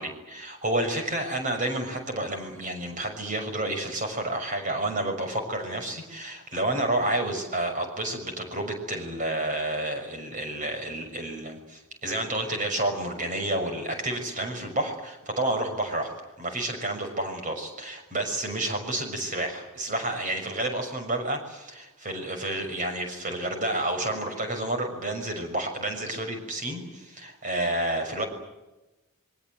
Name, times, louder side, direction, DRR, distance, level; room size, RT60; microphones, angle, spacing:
voice 1, 0.0-16.1 16.4-28.2, right 1 dB, 35° right, 5 dB, 6.3 m, -30 dB
27.5 x 23.5 x 8.0 m, 1.0 s
head